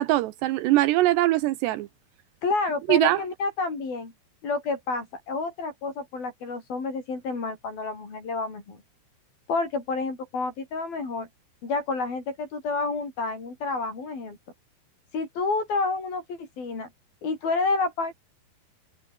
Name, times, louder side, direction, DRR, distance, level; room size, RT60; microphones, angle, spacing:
voice 1, 0.0-1.9 2.9-3.2, right 16 dB, 80° right, 3.0 m, -22 dB
voice 2, 2.4-4.1 4.4-8.8 9.5-11.3 11.6-14.4 15.1-16.9 17.2-18.1, left 3 dB, 55° left, 8.6 m, -29 dB
omnidirectional pair, 5.0 m